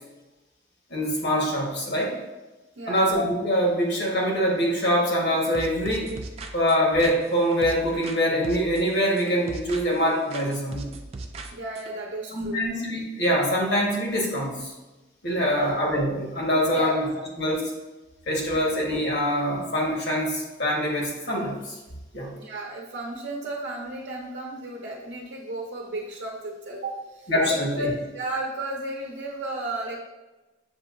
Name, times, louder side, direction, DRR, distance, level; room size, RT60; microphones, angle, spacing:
voice 1, 0.9-2.2 2.9-6.1 6.5-10.9 12.3-14.7 15.2-17.0 17.4-17.6 18.3-21.8 22.1-22.3 27.3-27.9, equal, 60° left, -2 dB, 1.3 m, -24 dB
sound 1, 5.5-8.2 8.4-10.0 10.3-11.9, right 2 dB, 35° right, 0.3 m, -39 dB
voice 2, 11.5-12.6 15.3-15.7 16.7-17.2 22.3-30.0, right 2 dB, 65° right, -2 dB, 0.7 m, -34 dB
7.2 x 2.8 x 2.6 m, 1.1 s
head